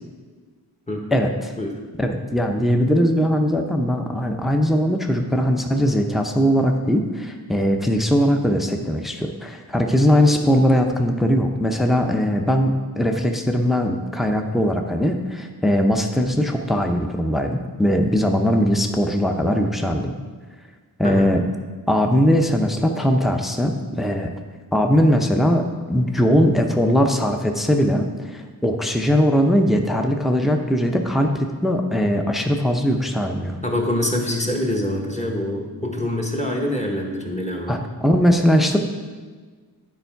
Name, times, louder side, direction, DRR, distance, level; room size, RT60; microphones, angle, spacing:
voice 1, 1.1-1.5 2.0-20.1 21.0-21.4 21.9-24.3 24.7-33.6 37.7-38.8, equal, ahead, 4 dB, 0.6 m, -20 dB
voice 2, 33.6-37.8, left 1 dB, 20° left, 1 dB, 1.2 m, -25 dB
9.6 x 4.6 x 4.5 m, 1.5 s
wide cardioid pair, 55°, 38 cm